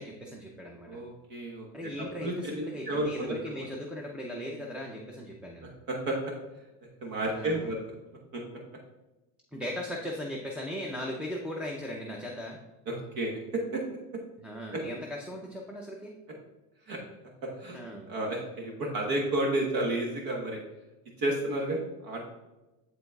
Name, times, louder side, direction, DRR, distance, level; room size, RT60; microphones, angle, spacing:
voice 1, 0.0-1.0 1.7-5.7 7.3-7.7 9.5-12.6 14.4-16.2 17.7-18.1, left 1 dB, 5° right, -3 dB, 0.5 m, -38 dB
voice 2, 0.9-3.6 5.6-6.2 7.0-7.8 8.3-8.4 12.9-13.8 14.7-14.8 16.9-17.0 17.4-17.8 18.1-20.6 21.2-22.2, right 1 dB, 55° right, 0 dB, 1.2 m, -32 dB
10.5 x 4.0 x 2.3 m, 1.1 s
supercardioid pair, 120°, 42 cm